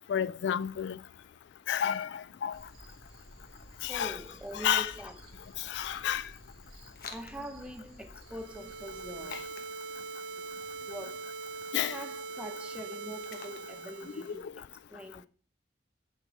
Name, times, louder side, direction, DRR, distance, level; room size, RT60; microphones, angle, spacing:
voice 1, 0.1-1.0 1.7-2.6 3.8-4.2 4.5-4.9 5.6-6.3 11.7-12.0 14.2-14.5, left 9 dB, 75° left, 0.3 m, -31 dB
sound 1, 2.5-9.4, right 1 dB, 55° right, 2.8 m, -54 dB
voice 2, 3.9-5.2 7.1-9.5 10.9-11.2 11.8-15.3, equal, 5° right, 0.6 m, -44 dB
sound 2, 6.8-14.2, left 5 dB, 55° left, 1.1 m, -53 dB
sound 3, 8.3-14.4, right 4 dB, 80° right, 0.5 m, -42 dB
7.2 x 5.4 x 5.8 m
head